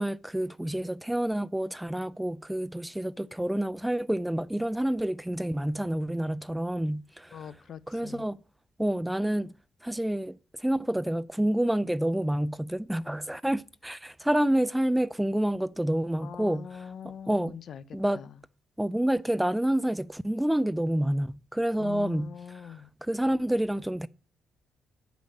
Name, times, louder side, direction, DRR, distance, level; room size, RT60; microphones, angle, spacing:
voice 1, 0.0-7.3 7.9-8.4 8.8-9.5 9.8-16.7 17.3-17.5 17.9-18.2 18.8-22.3 23.1-24.1, right 1 dB, 5° right, 0.4 m, -28 dB
voice 2, 7.3-8.3 16.2-18.4 21.8-22.9, left 8 dB, 60° left, 0.7 m, -43 dB
10.0 x 5.2 x 7.6 m
cardioid pair, 90°, 0 cm